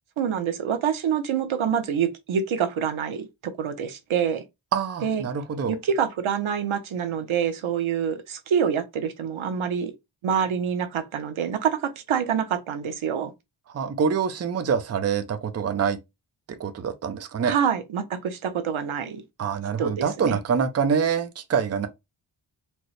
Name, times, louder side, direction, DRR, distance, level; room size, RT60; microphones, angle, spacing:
voice 1, 0.2-3.3 3.6-4.4 5.0-5.2 5.7-9.9 10.2-13.3 17.4-19.2 19.8-20.4, right 7 dB, 85° right, 0.8 m, -26 dB
voice 2, 4.7-5.8 13.7-16.0 16.5-17.6 19.4-21.9, right 6 dB, 35° right, 0.5 m, -25 dB
4.3 x 2.0 x 3.1 m
wide cardioid pair, 135°, 47 cm